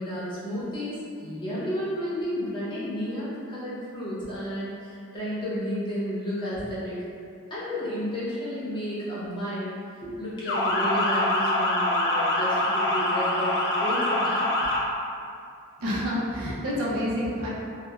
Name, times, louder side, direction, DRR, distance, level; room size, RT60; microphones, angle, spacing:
voice 1, 0.0-7.0 7.5-9.7 10.0-14.5, equal, 20° left, -10 dB, 0.7 m, -32 dB
Motor vehicle (road) / Siren, 10.5-14.8, left 1 dB, 55° left, 0.4 m, -24 dB
voice 2, 15.8-17.5, equal, 80° right, -6 dB, 0.5 m, -28 dB
2.9 x 2.1 x 2.3 m, 2.4 s
head